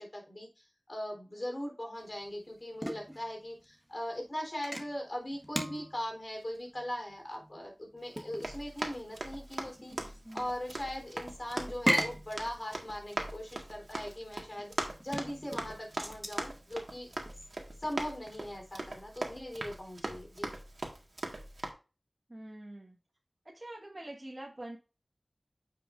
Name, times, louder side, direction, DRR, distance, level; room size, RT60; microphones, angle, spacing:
voice 1, 0.0-14.7 15.0-17.1 17.8-20.6, equal, 40° left, 1 dB, 3.7 m, -40 dB
sound 1, 2.0-18.5, equal, ahead, 1.6 m, -39 dB
Run, 8.1-21.7, right 2 dB, 75° right, 1.7 m, -41 dB
voice 2, 22.3-23.0 23.5-24.8, right 1 dB, 35° right, -2 dB, 1.7 m, -45 dB
9.1 x 6.1 x 2.6 m, 0.31 s
wide cardioid pair, 45°, 0 cm